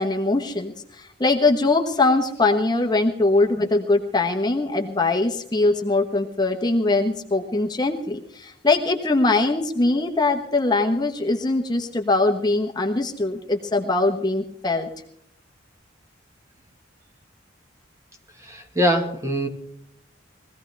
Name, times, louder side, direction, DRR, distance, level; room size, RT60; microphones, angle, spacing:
voice 1, 0.0-14.9, left 2 dB, 20° left, 3 dB, 1.0 m, -22 dB
voice 2, 18.4-19.5, equal, 15° right, 4 dB, 1.4 m, -23 dB
22.0 x 16.0 x 3.4 m, 0.69 s
head